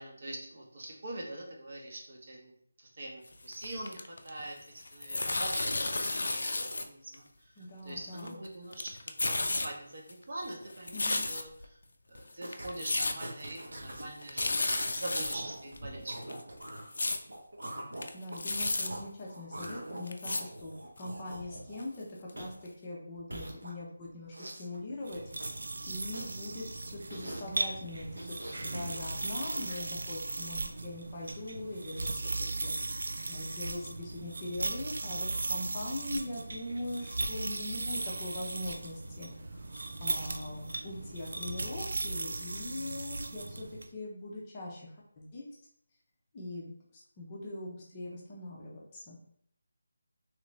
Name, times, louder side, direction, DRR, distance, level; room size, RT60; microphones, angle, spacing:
voice 1, 0.0-2.5 2.8-11.8 12.1-16.6, right 1 dB, 45° right, -1 dB, 0.8 m, -43 dB
sound 1, 3.3-4.5 4.8-6.9 7.1-7.2 7.9-8.5 8.7-9.7 10.1-11.6 12.2-12.3 12.5-13.2 13.5-13.6 13.9-14.0 14.2-15.4 15.8-15.9 16.2-17.2 17.6-17.7 17.9-18.9 19.6-19.7 20.1-20.4 21.0-21.1 21.8-21.9 22.3-22.4 22.7-22.8, left 2 dB, 70° left, 0.4 m, -33 dB
voice 2, 7.6-8.4 10.9-11.2 16.7-16.8 18.1-22.1 22.3-25.2 25.9-28.4 28.7-32.2 32.6-33.0 33.3-43.7 43.9-44.9 45.2-45.5 46.3-49.2, left 1 dB, 20° left, -4 dB, 0.5 m, -41 dB
sound 2, 12.4-12.7 13.0-14.0 14.3-14.8 15.2-19.0 19.3-22.0 22.4-22.6 23.2-24.0 24.3-24.8 25.1-25.6 26.1-26.5 27.1-27.6 28.1-28.6 28.9-29.8 30.4-30.7 31.3-31.4, right 1 dB, 90° right, 0.9 m, -44 dB
sound 3, 25.0-43.9, right 2 dB, 65° right, 0.3 m, -37 dB
3.1 x 2.6 x 3.1 m, 0.67 s
figure-of-eight pair, 175°, 0 cm